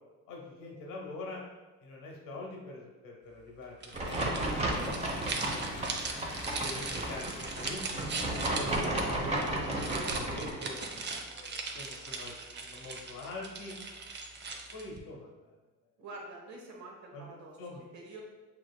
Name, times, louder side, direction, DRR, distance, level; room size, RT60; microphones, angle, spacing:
voice 1, 0.3-1.4 1.8-4.3 4.6-6.0 6.6-8.1 8.5-10.8 11.3-12.3 12.6-13.7 14.4-15.6 17.1-17.3 17.6-17.9, left 2 dB, 90° left, -1 dB, 1.1 m, -45 dB
sound 1, 3.6-8.7, left 3 dB, 75° left, 0.8 m, -49 dB
sound 2, 3.8-15.0, right 4 dB, 35° right, 0.6 m, -39 dB
sound 3, 3.9-10.5, right 1 dB, 20° right, 0.9 m, -33 dB
voice 2, 16.0-18.2, right 2 dB, 70° right, -1 dB, 1.1 m, -47 dB
5.9 x 3.0 x 2.2 m, 1.2 s
cardioid pair, 90°, 30 cm